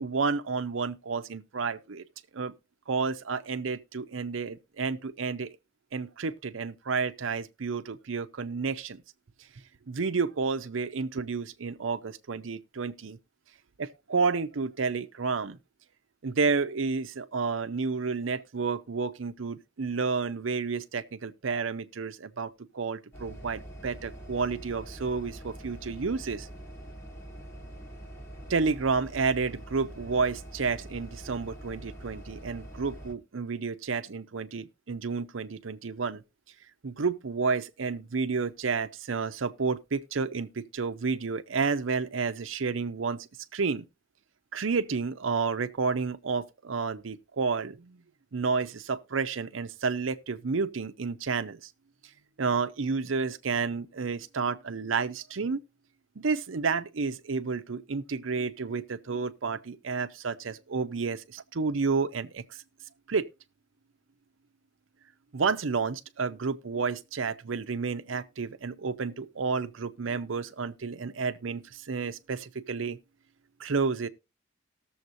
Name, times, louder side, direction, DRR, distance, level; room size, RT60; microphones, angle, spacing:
voice 1, 0.0-2.0 2.3-2.5 2.9-5.5 5.9-9.0 9.9-13.2 13.8-15.6 16.2-26.5 28.5-36.2 36.8-43.9 44.5-48.0 48.3-51.7 52.4-55.6 56.2-62.4 63.1-63.3 65.3-73.0 73.6-74.1, right 4 dB, 85° right, 0.7 m, -30 dB
sound 1, 23.1-33.1, right 1 dB, 15° left, 1.2 m, -44 dB
19.0 x 7.1 x 2.6 m
head